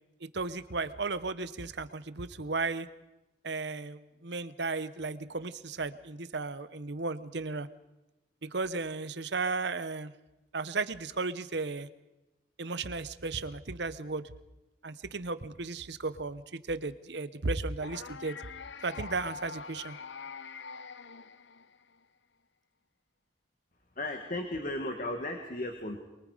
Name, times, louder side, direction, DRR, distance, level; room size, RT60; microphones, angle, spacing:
voice 1, 0.2-2.9 3.4-7.7 8.4-10.1 10.5-11.9 12.6-14.2 14.8-16.4 16.7-18.4 18.8-20.0, right 3 dB, 60° right, 13 dB, 0.9 m, -35 dB
sound 1, 17.8-22.0, left 5 dB, 65° left, 0.7 m, -44 dB
voice 2, 24.0-26.0, left 1 dB, 45° left, 4 dB, 1.9 m, -35 dB
23.5 x 23.5 x 5.0 m, 1.0 s
head